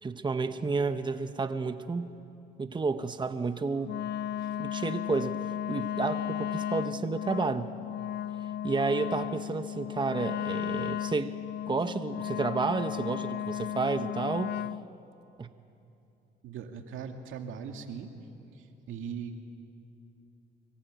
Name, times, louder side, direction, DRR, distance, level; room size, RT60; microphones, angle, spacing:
voice 1, 0.0-2.1 2.6-3.9 4.6-5.4 5.7-7.7 8.6-11.3 11.7-14.5 15.4-15.5, right 4 dB, 25° right, 9 dB, 1.0 m, -31 dB
Wind instrument woodwind instrument, 3.8-14.9, left 10 dB, 55° left, 0.5 m, -34 dB
voice 2, 16.4-18.1 18.5-19.4, right 7 dB, 85° right, 4 dB, 2.2 m, -40 dB
24.5 x 22.5 x 9.2 m, 2.8 s
cardioid pair, 90°, 20 cm